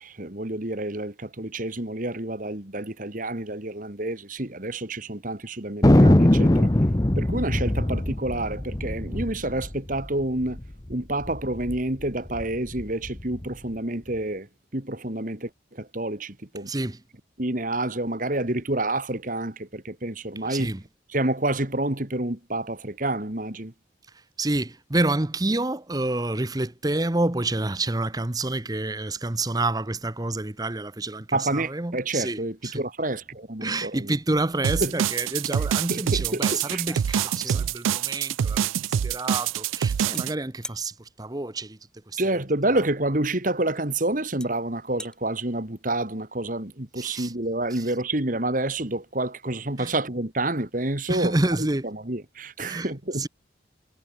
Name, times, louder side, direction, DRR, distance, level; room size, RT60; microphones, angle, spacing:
voice 1, 0.0-6.7 7.2-10.6 10.9-14.5 14.7-16.7 17.4-20.7 21.1-23.7 31.3-34.1 34.8-35.0 35.9-36.8 42.2-53.3, right 2 dB, 45° right, 2.3 m, -28 dB
Thunder, 5.8-10.7 10.9-11.0 11.2-11.8 12.3-13.4, left 1 dB, 20° left, 0.7 m, -21 dB
voice 2, 16.7-17.0 20.4-20.8 24.4-32.8 33.6-38.7 39.0-41.8 42.1-42.4 42.7-42.8 47.0-47.3 47.7-47.9 49.8-49.9 51.1-51.9 52.6-53.3, right 2 dB, 20° right, 0.9 m, -28 dB
sound 1, 34.6-40.3, right 8 dB, 85° right, 0.3 m, -25 dB
sound 2, 36.3-36.4 36.7-38.1 40.1-40.2 40.6-40.8 42.7-42.8 43.7-43.8 44.4-44.5 44.8-45.1, left 1 dB, 5° left, 1.6 m, -41 dB
head